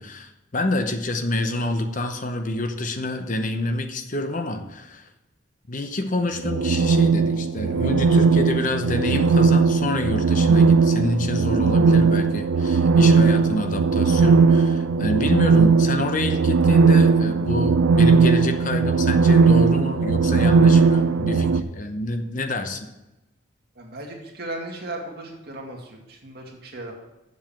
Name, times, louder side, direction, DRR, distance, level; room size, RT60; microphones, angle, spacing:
voice 1, 0.0-5.1 5.7-22.9, left 2 dB, 40° left, 7 dB, 0.8 m, -27 dB
sound 1, 6.4-21.6, right 4 dB, 85° right, 0.5 m, -18 dB
voice 2, 23.8-26.9, right 1 dB, 50° right, 0 dB, 2.2 m, -36 dB
7.6 x 7.3 x 7.2 m, 0.98 s
head